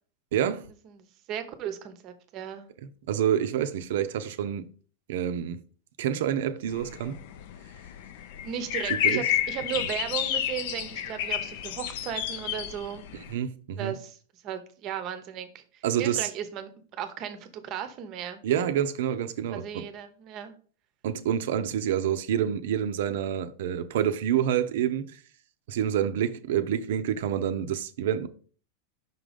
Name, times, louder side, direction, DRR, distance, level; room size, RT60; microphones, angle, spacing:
voice 1, 0.3-0.6 3.1-4.7 5.1-5.6 6.0-7.2 9.0-9.2 13.1-13.9 15.8-16.3 18.4-19.8 21.0-25.2 25.7-28.3, right 9 dB, 65° right, 0.6 m, -27 dB
voice 2, 0.8-2.7 8.4-13.1 13.8-14.2 14.4-16.7 17.0-18.4 19.5-20.5, right 9 dB, 35° right, 0.8 m, -36 dB
sound 1, 6.7-13.3, left 10 dB, 55° left, 0.6 m, -31 dB
5.7 x 3.8 x 5.1 m
supercardioid pair, 155°, 0 cm